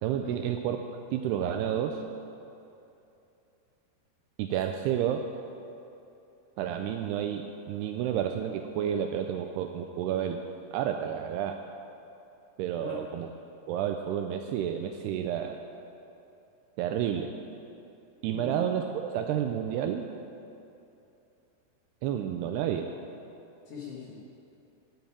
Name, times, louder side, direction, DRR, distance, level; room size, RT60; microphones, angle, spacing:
voice 1, 0.0-0.8 1.1-2.0 4.4-5.3 6.6-10.4 10.7-11.6 12.6-13.3 13.7-15.6 16.8-17.3 18.2-20.0 22.0-22.9, right 9 dB, 85° right, 5 dB, 2.4 m, -30 dB
voice 2, 18.2-18.7 23.7-24.2, left 6 dB, 60° left, -4 dB, 2.4 m, -41 dB
10.0 x 9.3 x 8.7 m, 2.7 s
omnidirectional pair, 5.1 m